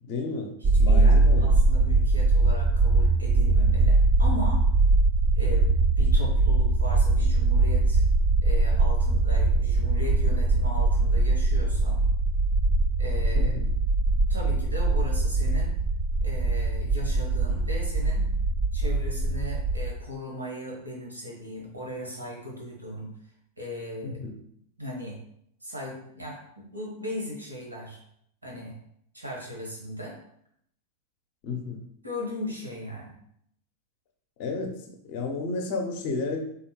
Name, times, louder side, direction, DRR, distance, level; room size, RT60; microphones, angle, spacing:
voice 1, 0.0-1.6 2.0-2.1 13.3-13.7 24.0-24.4 31.4-31.8 34.4-36.4, left 3 dB, 45° left, 3 dB, 0.7 m, -32 dB
sound 1, 0.6-19.9, right 2 dB, 30° right, 0.4 m, -22 dB
voice 2, 0.6-4.6 5.4-5.7 6.0-8.0 8.4-12.0 13.0-13.5 14.3-15.7 16.2-18.3 18.7-23.1 23.6-24.2 24.8-25.2 25.6-28.0 28.4-28.7 29.1-30.2 32.0-33.1, left 1 dB, 85° right, -2 dB, 1.4 m, -37 dB
4.1 x 3.5 x 3.0 m, 0.71 s
figure-of-eight pair, 90°, 0 cm